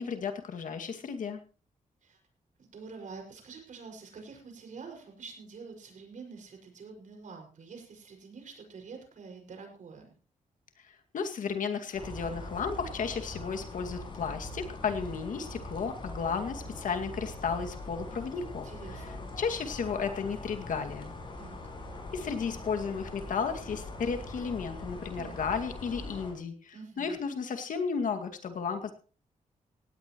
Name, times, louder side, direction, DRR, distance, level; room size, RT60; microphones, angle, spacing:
voice 1, 0.0-1.4 11.1-18.7 19.4-21.1 22.1-28.9, left 6 dB, 70° left, 5 dB, 2.2 m, -33 dB
voice 2, 2.6-10.2 18.0-18.2 18.6-19.3 21.4-21.6 24.9-25.4 26.7-27.2, right 4 dB, 65° right, 3 dB, 5.9 m, -47 dB
sound 1, 11.9-26.3, left 2 dB, 35° left, 6.2 m, -42 dB
18.0 x 16.5 x 3.1 m, 0.37 s
wide cardioid pair, 145°, 14 cm